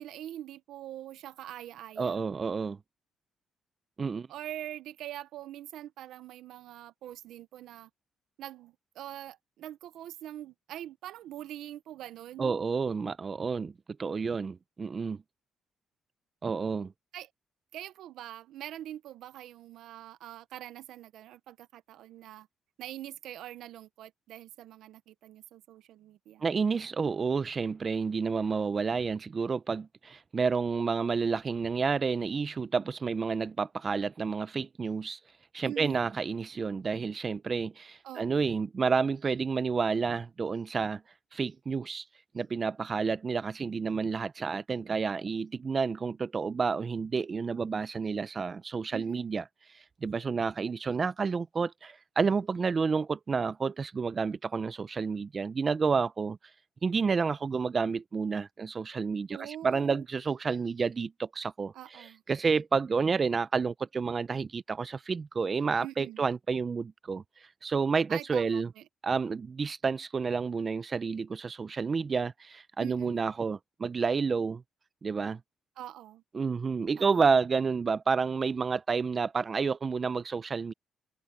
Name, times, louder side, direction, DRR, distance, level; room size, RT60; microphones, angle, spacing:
voice 1, 0.0-2.2 4.3-7.9 8.4-12.5 17.1-17.3 17.7-22.5 22.8-26.4 35.6-36.1 38.0-38.5 48.9-49.3 59.3-60.0 61.7-62.2 65.8-66.2 68.1-68.8 72.8-73.3 75.8-76.2 77.0-77.2, right 12 dB, 85° right, 0.8 m, -44 dB
voice 2, 2.0-2.8 4.0-4.3 12.4-13.7 14.0-15.2 16.4-16.9 26.4-35.2 35.5-41.0 41.3-42.0 42.3-49.4 49.7-56.4 56.8-67.2 67.6-68.7 69.0-74.6 75.0-75.4 76.3-80.7, right 5 dB, 35° right, 0.6 m, -30 dB
cardioid pair, 90°, 0 cm